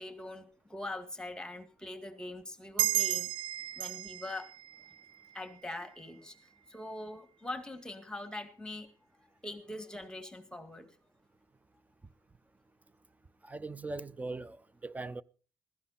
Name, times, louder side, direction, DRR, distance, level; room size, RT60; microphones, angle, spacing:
voice 1, 0.0-3.3 3.8-4.5 4.8-4.9 5.3-8.9 9.4-10.9, left 1 dB, 10° left, 2.0 m, -43 dB
sound 1, 2.8-5.9, right 14 dB, 85° right, 0.5 m, -34 dB
voice 2, 13.4-14.6 14.8-15.2, right 3 dB, 20° right, 0.6 m, -39 dB
15.0 x 13.0 x 4.1 m
supercardioid pair, 75°, 9 cm